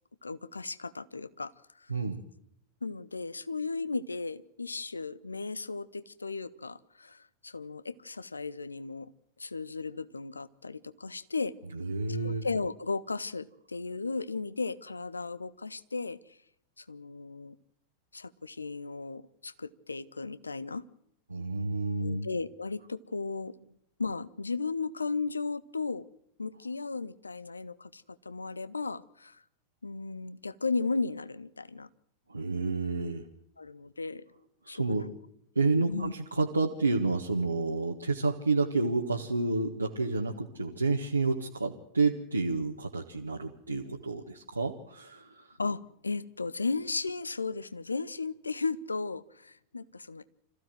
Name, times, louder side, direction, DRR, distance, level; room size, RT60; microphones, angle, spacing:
voice 1, 0.2-1.5 1.8-1.9 2.8-9.1 9.4-11.5 12.1-16.4 16.8-17.6 18.1-20.8 22.0-23.5 24.0-26.0 26.4-29.4 29.8-31.9 33.6-34.2 34.7-35.0 35.9-36.1 45.6-50.2, left 4 dB, 80° left, 17 dB, 0.7 m, -35 dB
voice 2, 11.7-12.4 21.3-22.3 32.3-33.2 34.6-35.1 35.5-45.6, right 3 dB, 80° right, 0 dB, 1.6 m, -30 dB
26.0 x 15.0 x 7.8 m, 0.75 s
figure-of-eight pair, 90°, 0 cm